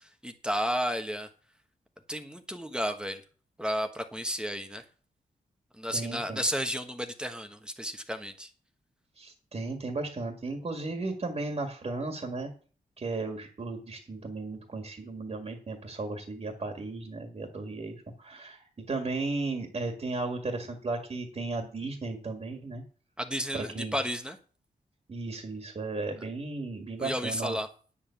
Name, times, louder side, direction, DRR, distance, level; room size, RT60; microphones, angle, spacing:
voice 1, 0.2-1.3 2.1-3.2 3.6-4.8 5.8-8.5 23.2-24.4 27.0-27.7, equal, 5° right, 6 dB, 1.2 m, -32 dB
voice 2, 5.9-6.4 9.2-12.5 13.0-22.8 23.5-23.9 25.1-27.6, right 3 dB, 45° right, 4 dB, 2.0 m, -35 dB
9.7 x 7.2 x 7.0 m, 0.42 s
wide cardioid pair, 105°, 15 cm